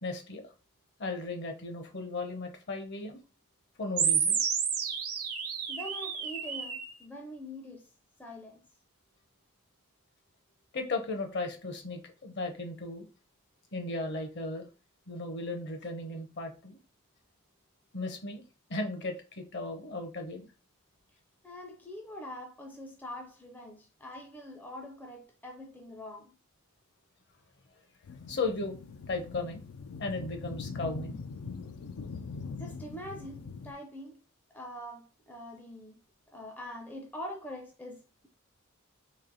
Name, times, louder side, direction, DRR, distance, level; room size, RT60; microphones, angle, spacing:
voice 1, 0.0-0.5 1.0-3.2 3.8-4.4 10.7-13.0 13.7-14.7 15.1-16.8 17.9-18.4 18.7-20.5 28.3-28.8 29.1-29.6 30.0-31.2, left 2 dB, 50° left, 0.8 m, -36 dB
sound 1, 4.0-7.0, right 7 dB, 80° right, 0.8 m, -30 dB
voice 2, 5.7-7.9 8.2-8.6 21.4-26.3 32.6-34.2 34.5-36.0 36.3-38.3, left 1 dB, 10° left, 0.4 m, -44 dB
sound 2, 28.0-33.7, left 4 dB, 85° left, 0.4 m, -42 dB
3.2 x 2.7 x 3.8 m
head